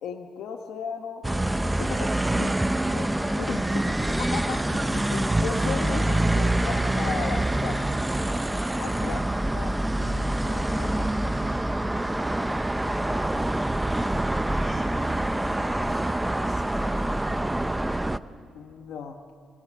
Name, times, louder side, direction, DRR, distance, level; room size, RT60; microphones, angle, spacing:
voice 1, 0.0-1.2 1.8-2.6 2.9-3.1 3.4-7.9 8.8-9.2 9.5-11.1 11.4-11.5 18.5-19.2, left 7 dB, 75° left, 6 dB, 1.4 m, -36 dB
sound 1, 1.2-18.2, right 1 dB, 10° right, 0.7 m, -26 dB
voice 2, 3.1-3.8 8.8-9.2 13.0-17.2, equal, 15° left, 2 dB, 7.1 m, -44 dB
27.0 x 20.0 x 8.7 m, 2.2 s
cardioid pair, 90°, 0 cm